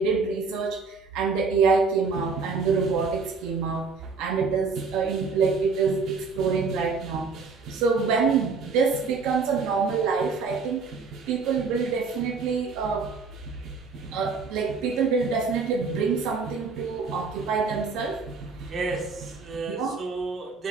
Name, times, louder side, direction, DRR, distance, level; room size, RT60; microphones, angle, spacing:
voice 1, 0.0-3.9 4.2-7.3 7.7-10.9 11.3-13.2 14.1-18.2 19.7-20.0, right 5 dB, 75° right, 3 dB, 0.8 m, -26 dB
sound 1, 2.0-19.6, right 3 dB, 50° right, 1.2 m, -40 dB
voice 2, 18.7-20.7, right 3 dB, 30° right, 0 dB, 1.2 m, -32 dB
10.0 x 4.3 x 2.6 m, 0.87 s
cardioid pair, 165°, 0 cm